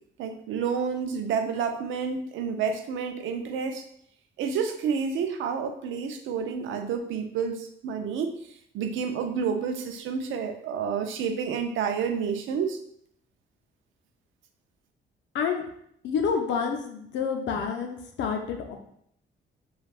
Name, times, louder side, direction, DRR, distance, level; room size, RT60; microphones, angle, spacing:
voice 1, 0.2-3.8 4.4-8.3 8.7-12.8, right 6 dB, 80° right, 6 dB, 0.4 m, -29 dB
voice 2, 15.3-15.6 16.0-18.8, left 6 dB, 70° left, 3 dB, 0.6 m, -28 dB
3.3 x 2.3 x 2.4 m, 0.69 s
cardioid pair, 90°, 20 cm